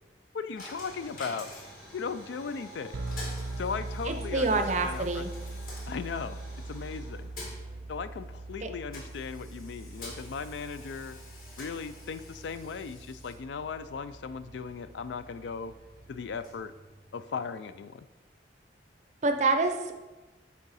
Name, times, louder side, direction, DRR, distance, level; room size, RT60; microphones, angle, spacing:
voice 1, 0.3-1.5 1.9-3.0 3.6-5.3 5.9-6.4 6.7-7.3 7.9-11.2 11.6-15.7 16.1-16.7 17.1-18.0, left 5 dB, 75° left, 13 dB, 0.3 m, -37 dB
Coin (dropping), 0.6-17.5, left 1 dB, 50° left, 1.8 m, -48 dB
sound 1, 2.9-16.4, right 2 dB, 90° right, 0.5 m, -42 dB
voice 2, 4.1-5.3 8.6-8.7 19.2-19.9, right 3 dB, 40° right, 6 dB, 0.5 m, -27 dB
8.7 x 3.6 x 4.1 m, 1.1 s
head